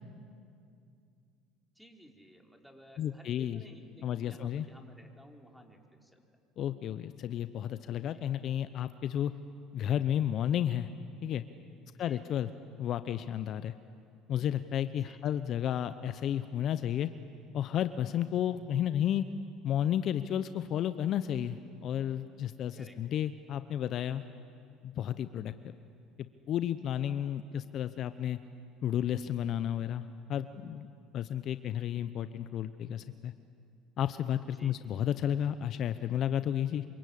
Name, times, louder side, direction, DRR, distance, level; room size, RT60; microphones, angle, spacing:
voice 1, 1.7-6.2 8.1-8.2 11.9-12.2 15.0-15.2 22.7-23.0 34.5-34.7, equal, ahead, 2 dB, 4.3 m, -55 dB
voice 2, 3.0-3.6 4.0-4.7 6.6-9.3 9.7-10.9 11.2-11.4 12.0-12.5 12.8-13.7 14.3-17.1 17.5-19.3 19.6-24.2 24.8-25.5 26.2-28.4 28.8-30.9 31.1-33.3 34.0-36.9, left 10 dB, 55° left, 12 dB, 0.8 m, -32 dB
27.0 x 25.0 x 8.6 m, 2.4 s
supercardioid pair, 85°, 0 cm